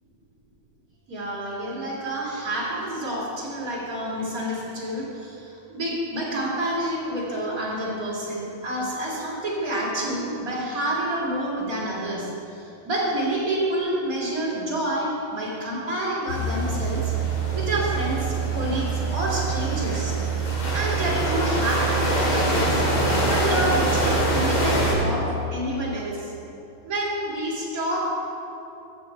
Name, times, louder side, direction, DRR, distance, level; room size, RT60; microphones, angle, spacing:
voice 1, 1.1-17.1 17.5-20.2 20.7-22.9 23.2-26.3 26.8-28.0, right 1 dB, 45° right, -5 dB, 2.9 m, -28 dB
sound 1, 16.3-24.9, right 2 dB, 80° left, 3.3 m, -24 dB
13.0 x 8.4 x 4.5 m, 2.9 s
omnidirectional pair, 2.2 m